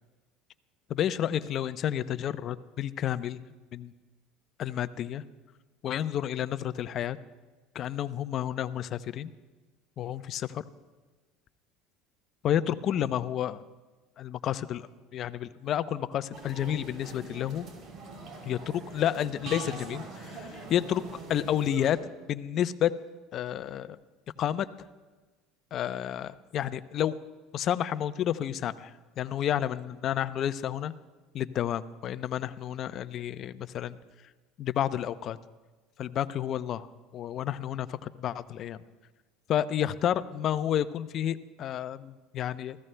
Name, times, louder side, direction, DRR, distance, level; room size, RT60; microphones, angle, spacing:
voice 1, 0.9-3.4 3.7-3.9 4.6-5.2 5.8-7.2 7.7-9.3 10.0-10.6 12.4-13.6 14.2-17.6 18.4-21.0 21.3-22.0 22.3-22.9 23.3-24.0 24.4-24.7 25.7-27.2 27.5-30.9 31.3-34.0 34.6-35.4 36.0-36.9 37.1-38.8 39.5-42.8, left 10 dB, 50° left, 13 dB, 0.6 m, -30 dB
sound 1, 16.3-21.9, right 3 dB, 55° right, 3.2 m, -43 dB
29.5 x 15.0 x 2.2 m, 1.2 s
hypercardioid pair, 85°, 0 cm